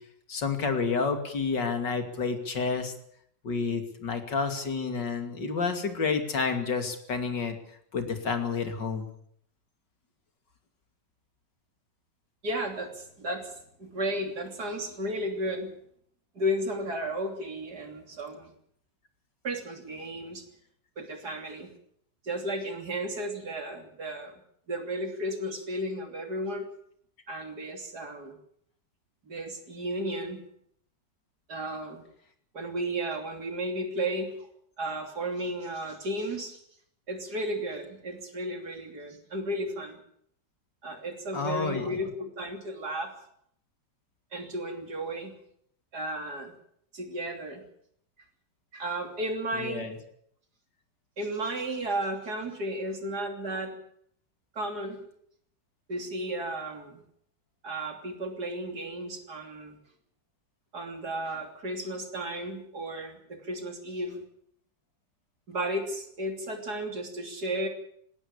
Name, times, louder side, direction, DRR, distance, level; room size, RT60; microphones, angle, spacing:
voice 1, 0.3-2.9 3.4-7.6 7.9-9.1 41.3-41.8 49.5-49.9, left 4 dB, 75° left, 6 dB, 3.3 m, -29 dB
voice 2, 12.4-13.5 13.8-15.7 16.4-18.5 19.4-20.4 21.0-21.7 22.2-24.4 24.7-26.7 27.3-28.4 29.3-30.4 31.5-32.0 32.5-34.3 34.8-36.6 37.1-40.0 40.8-43.1 44.3-45.3 45.9-46.5 46.9-47.6 48.7-49.9 51.2-53.7 54.5-55.0 55.9-57.0 57.6-59.8 60.7-64.2 65.5-67.7, right 1 dB, 60° right, 4 dB, 3.7 m, -34 dB
20.0 x 17.0 x 8.5 m, 0.67 s
omnidirectional pair, 1.9 m